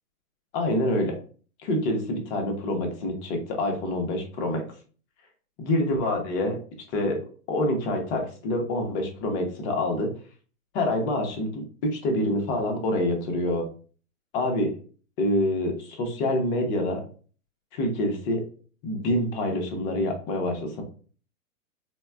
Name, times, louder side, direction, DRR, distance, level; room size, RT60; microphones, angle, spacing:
voice 1, 0.5-1.2 1.6-4.6 5.6-6.6 6.9-7.2 7.5-10.1 10.7-13.7 14.3-14.7 15.2-17.0 17.7-18.4 18.8-20.8, left 1 dB, 40° left, 3 dB, 1.0 m, -26 dB
4.1 x 2.2 x 2.2 m, 0.40 s
hypercardioid pair, 120°, 42 cm